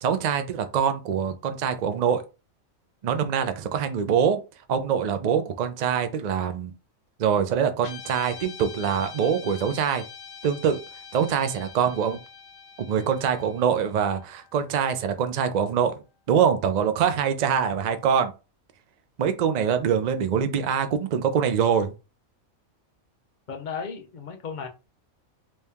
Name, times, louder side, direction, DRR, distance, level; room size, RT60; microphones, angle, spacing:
voice 1, 0.0-2.2 3.0-4.4 4.7-6.7 7.2-10.0 10.4-10.8 11.1-12.2 12.9-15.9 16.3-18.3 19.2-21.9, right 7 dB, 90° right, 0.3 m, -24 dB
Guitar, 7.8-16.3, left 7 dB, 75° left, 0.9 m, -45 dB
voice 2, 23.5-24.7, left 6 dB, 45° left, 0.7 m, -35 dB
3.2 x 2.7 x 3.5 m
omnidirectional pair, 1.4 m